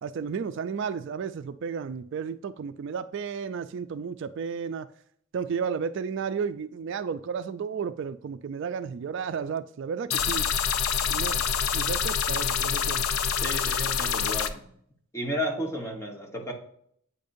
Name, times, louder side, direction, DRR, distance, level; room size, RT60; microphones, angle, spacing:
voice 1, 0.0-4.9 5.3-10.5 11.1-11.4 11.7-13.0, right 6 dB, 60° right, 0.3 m, -33 dB
sound 1, 10.1-14.5, left 7 dB, 85° left, 0.5 m, -26 dB
voice 2, 13.4-14.7 15.1-16.5, equal, 15° left, 1.1 m, -32 dB
8.4 x 5.2 x 2.6 m
head